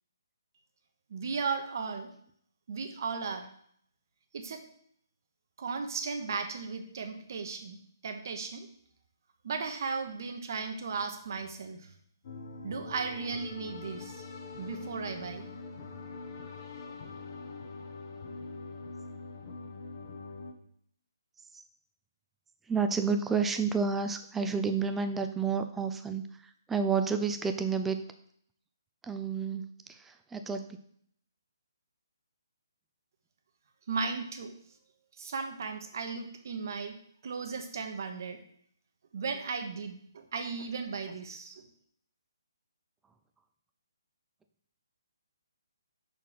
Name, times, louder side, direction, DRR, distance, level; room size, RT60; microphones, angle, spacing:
voice 1, 1.1-2.1 2.7-3.5 4.3-4.6 5.6-8.7 9.4-11.9 12.6-14.2 14.6-15.5 33.9-34.5 35.2-36.9 37.2-38.4 39.1-41.5, right 5 dB, 55° right, 5 dB, 1.0 m, -36 dB
sound 1, 12.2-20.5, left 3 dB, 45° left, 1.2 m, -43 dB
voice 2, 22.7-28.0 29.0-30.8, right 5 dB, 5° right, 7 dB, 0.4 m, -30 dB
5.9 x 4.4 x 5.0 m, 0.65 s
hypercardioid pair, 150°, 2 cm